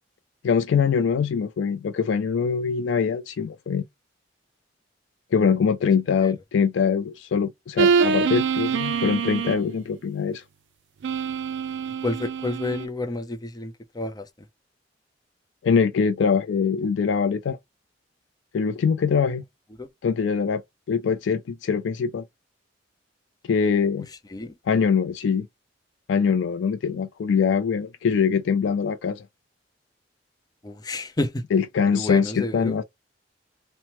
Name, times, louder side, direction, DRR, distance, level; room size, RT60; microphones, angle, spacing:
voice 1, 0.4-3.8 5.3-10.4 15.6-17.6 18.5-19.4 20.0-20.6 20.9-22.2 23.5-24.1 24.7-25.5 26.1-29.2 31.5-32.8, left 6 dB, 85° left, 0.3 m, -23 dB
sound 1, 7.8-9.7 11.0-12.9, right 5 dB, 70° right, 0.4 m, -24 dB
voice 2, 12.0-14.3 19.8-19.9 24.3-24.6 30.6-31.4 31.9-32.8, left 2 dB, 20° left, 0.5 m, -29 dB
2.9 x 2.1 x 2.9 m
head